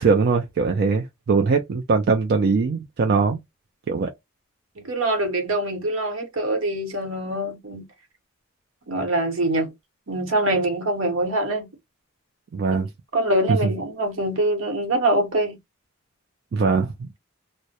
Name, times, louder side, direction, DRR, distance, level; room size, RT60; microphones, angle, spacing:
voice 1, 0.0-3.4 3.9-4.1 12.5-12.9 13.5-13.6 16.5-17.1, right 4 dB, 50° right, 0.4 m, -21 dB
voice 2, 4.8-7.9 8.9-9.7 10.1-11.7 13.1-15.6, right 1 dB, 75° right, 0.9 m, -24 dB
2.2 x 2.0 x 2.7 m
head